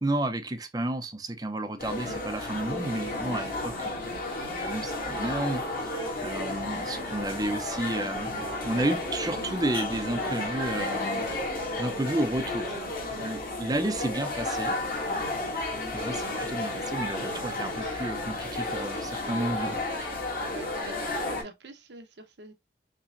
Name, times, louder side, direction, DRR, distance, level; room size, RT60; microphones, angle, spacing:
voice 1, 0.0-4.1 4.6-8.3 8.6-11.3 11.8-12.8 13.1-14.8 15.9-20.1, right 1 dB, 20° right, 0.5 m, -32 dB
sound 1, 1.8-21.4, left 2 dB, 50° left, 2.0 m, -32 dB
voice 2, 20.4-22.5, right 3 dB, 75° right, 0.9 m, -47 dB
5.7 x 3.0 x 2.5 m
head